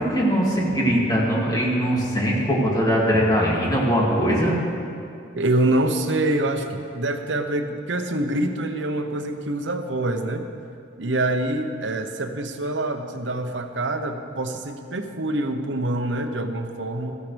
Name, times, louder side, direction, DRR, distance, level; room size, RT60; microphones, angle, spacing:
voice 1, 0.0-4.5, equal, 20° left, -4 dB, 2.6 m, -21 dB
voice 2, 5.3-10.5 11.0-17.2, right 1 dB, 80° right, 6 dB, 0.9 m, -25 dB
16.0 x 14.0 x 3.4 m, 2.5 s
head